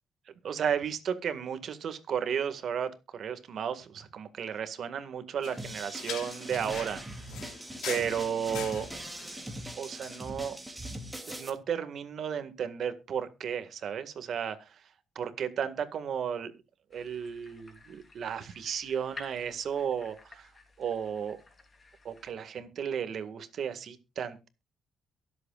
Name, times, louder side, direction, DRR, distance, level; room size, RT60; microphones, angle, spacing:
voice 1, 0.4-7.1 7.8-8.9 9.8-10.6 11.3-14.7 15.2-16.5 16.9-20.5 20.8-21.4 22.0-24.5, right 8 dB, 60° right, 10 dB, 1.9 m, -33 dB
sound 1, 5.4-9.4, left 8 dB, 75° left, 3.1 m, -42 dB
sound 2, 5.6-11.5, right 1 dB, 10° right, 2.8 m, -41 dB
sound 3, 16.9-22.3, left 3 dB, 30° left, 3.5 m, -52 dB
23.0 x 8.1 x 2.4 m, 0.27 s
cardioid pair, 90°, 0 cm